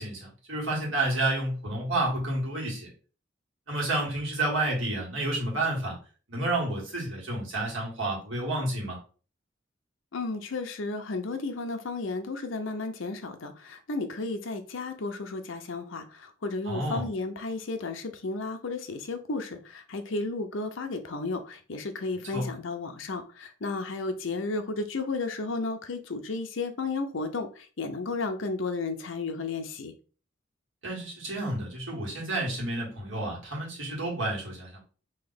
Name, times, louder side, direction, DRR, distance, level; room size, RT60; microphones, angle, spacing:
voice 1, 0.0-2.9 3.7-6.0 6.3-9.0 16.6-17.1 22.3-22.5 30.8-34.8, right 2 dB, 70° right, -4 dB, 1.9 m, -30 dB
voice 2, 10.1-29.9, left 3 dB, 75° left, 6 dB, 0.7 m, -33 dB
3.2 x 2.8 x 4.0 m, 0.38 s
head